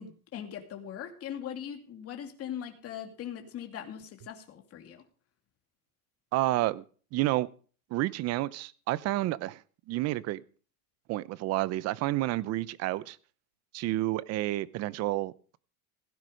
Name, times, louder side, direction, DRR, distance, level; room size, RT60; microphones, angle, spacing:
voice 1, 0.0-5.0, left 9 dB, 30° left, 4 dB, 2.6 m, -40 dB
voice 2, 6.3-6.8 7.1-7.5 7.9-9.6 9.9-10.4 11.1-13.2 13.7-15.3, right 16 dB, 35° right, 19 dB, 0.7 m, -30 dB
17.0 x 9.7 x 5.2 m, 0.41 s
supercardioid pair, 140°, 44 cm